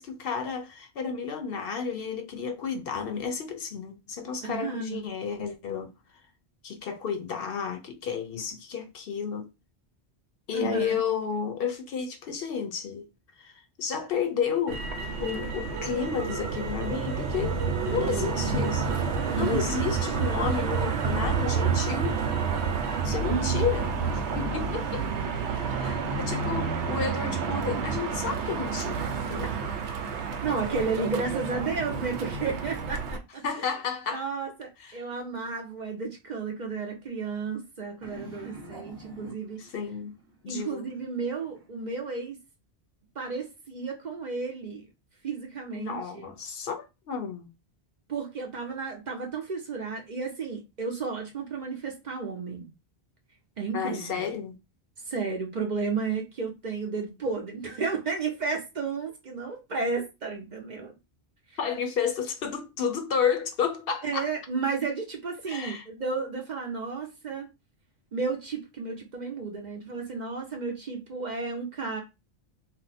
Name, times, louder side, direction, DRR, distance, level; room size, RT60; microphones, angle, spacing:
voice 1, 0.0-5.9 6.6-9.5 10.5-13.1 13.4-14.9 15.2-17.6 17.9-18.9 19.3-22.2 23.0-25.1 25.7-29.5 33.4-34.3 34.8-35.0 39.6-40.2 40.4-40.9 45.7-47.5 53.7-54.6 61.6-64.3 65.5-65.8, left 6 dB, 65° left, 0.7 m, -32 dB
voice 2, 4.4-5.0 10.5-11.0 19.4-19.6 23.2-23.7 25.8-25.9 30.4-33.7 34.1-39.6 40.5-42.4 43.2-44.9 45.2-46.3 48.1-52.7 53.6-54.2 55.1-60.9 61.5-61.6 64.0-67.5 68.1-72.0, right 4 dB, 50° right, 0.7 m, -32 dB
Motor vehicle (road), 14.7-33.2, right 5 dB, 90° right, 0.9 m, -29 dB
sound 1, 25.6-29.6 38.0-41.7, right 1 dB, 25° right, 1.0 m, -48 dB
2.6 x 2.1 x 4.0 m
omnidirectional pair, 1.1 m